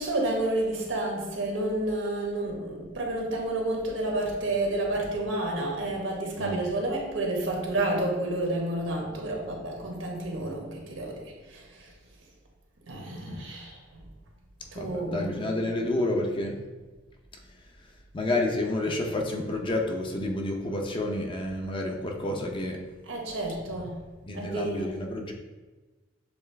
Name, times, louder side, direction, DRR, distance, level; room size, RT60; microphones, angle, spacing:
voice 1, 0.0-11.9 12.9-13.8 14.7-15.4 23.1-24.0 24.3-24.9, right 1 dB, 90° right, 0 dB, 1.1 m, -30 dB
voice 2, 14.8-16.6 18.1-22.8 24.2-25.3, left 2 dB, 25° left, 1 dB, 0.5 m, -29 dB
6.8 x 2.4 x 3.3 m, 1.2 s
head